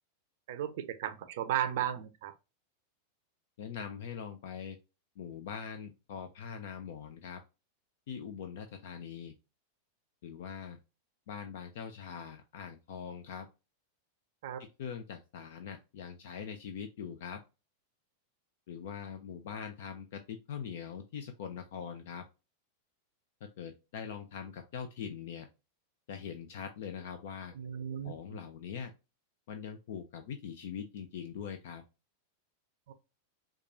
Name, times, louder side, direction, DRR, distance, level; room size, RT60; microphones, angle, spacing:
voice 1, 0.5-2.3 14.4-14.7 27.6-28.4 32.9-33.0, right 11 dB, 55° right, 0.5 m, -35 dB
voice 2, 3.6-4.8 5.2-7.4 8.1-9.3 10.2-10.8 11.3-13.5 14.6-17.4 18.7-22.2 23.4-25.5 26.1-27.5 28.0-28.9 29.5-31.8, left 7 dB, 55° left, 0.4 m, -42 dB
4.5 x 2.3 x 2.5 m
figure-of-eight pair, 90°, 0 cm